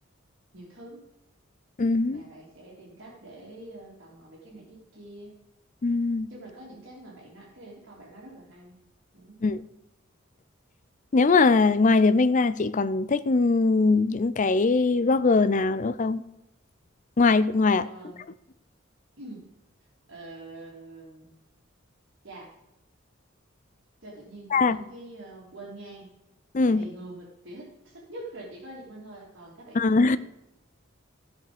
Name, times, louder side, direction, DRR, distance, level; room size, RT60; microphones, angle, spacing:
voice 1, 0.5-1.1 2.1-5.3 6.3-8.8 9.1-9.4 17.7-18.2 19.2-19.4 20.1-21.3 22.2-22.5 24.0-26.1 26.6-30.2, right 1 dB, 55° right, 3.0 m, -45 dB
voice 2, 1.8-2.2 5.8-6.3 9.4-9.7 11.1-16.2 17.2-17.9 24.5-24.8 26.5-26.8 29.7-30.2, left 3 dB, 40° left, 0.5 m, -21 dB
15.5 x 5.5 x 5.1 m
head